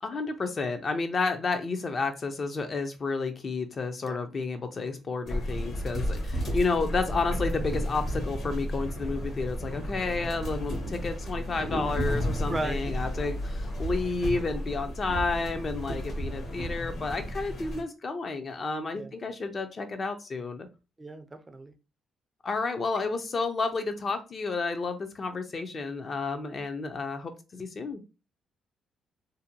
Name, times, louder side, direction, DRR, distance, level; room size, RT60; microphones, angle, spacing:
voice 1, 0.0-20.7 22.4-28.0, left 3 dB, 40° left, 7 dB, 0.4 m, -31 dB
sound 1, 5.3-17.8, equal, 60° left, 1.0 m, -32 dB
voice 2, 12.5-12.9 18.9-19.1 21.0-21.7, right 2 dB, 20° right, 8 dB, 0.4 m, -36 dB
2.7 x 2.1 x 2.6 m, 0.30 s
cardioid pair, 90°, 0 cm